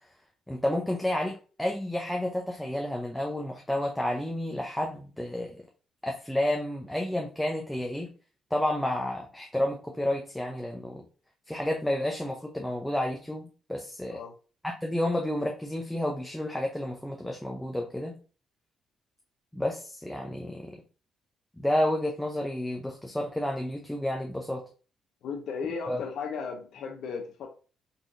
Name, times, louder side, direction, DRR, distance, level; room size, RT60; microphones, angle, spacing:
voice 1, 0.5-5.6 6.0-8.1 8.5-11.0 11.5-14.2 14.6-18.2 19.5-20.8 21.6-24.6 25.9-26.0, left 1 dB, 5° left, 0.6 m, -30 dB
voice 2, 25.2-27.5, left 5 dB, 70° left, 0.7 m, -35 dB
4.1 x 2.9 x 2.6 m
cardioid pair, 90°, 0 cm